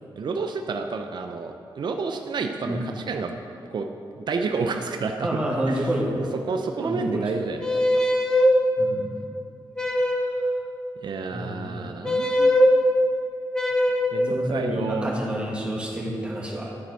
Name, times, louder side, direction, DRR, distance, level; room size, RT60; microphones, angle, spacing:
voice 1, 0.2-3.3 3.7-3.9 4.2-5.3 5.7-5.9 6.2-7.8 11.0-12.6 14.1-15.1, right 4 dB, 60° right, 5 dB, 0.5 m, -30 dB
voice 2, 5.2-6.3 6.8-7.3 8.8-9.2 11.3-11.9 14.3-16.8, equal, 10° right, -3 dB, 1.9 m, -29 dB
sound 1, 7.6-8.5 9.8-10.4 12.0-12.7 13.5-14.2, left 1 dB, 10° left, 1.2 m, -21 dB
11.0 x 4.3 x 6.3 m, 2.5 s
cardioid pair, 70°, 9 cm